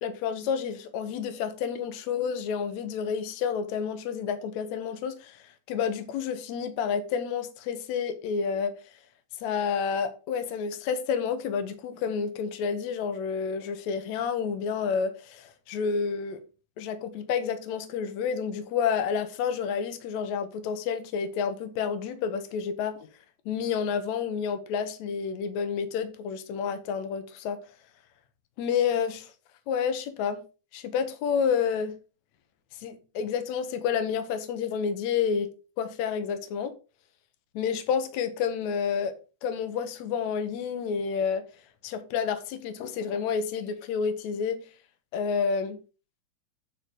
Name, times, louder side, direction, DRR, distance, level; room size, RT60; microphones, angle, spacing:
voice 1, 0.0-8.7 9.4-16.4 16.8-23.1 23.5-27.6 28.6-29.3 29.7-30.4 30.7-32.0 32.8-35.5 35.8-36.8 37.5-39.1 39.4-41.4 41.8-44.6 45.1-45.8, left 6 dB, 65° left, 1.8 m, -29 dB
9.8 x 3.9 x 6.2 m
omnidirectional pair, 4.7 m